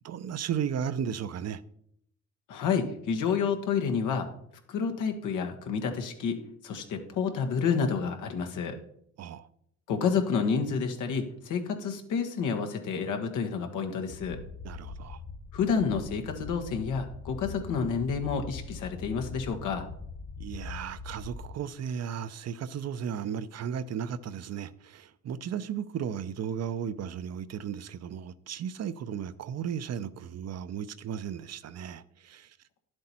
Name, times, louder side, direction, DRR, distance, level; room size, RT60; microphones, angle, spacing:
voice 1, 0.0-1.6 9.2-9.5 14.6-15.2 20.4-32.6, right 8 dB, 55° right, 0.7 m, -35 dB
voice 2, 2.5-4.3 4.7-6.4 6.6-8.8 9.9-14.4 15.5-19.9, left 6 dB, 85° left, 1.5 m, -29 dB
sound 1, 14.1-21.5, left 3 dB, 50° left, 1.7 m, -42 dB
11.0 x 7.7 x 4.4 m
cardioid pair, 90°, 30 cm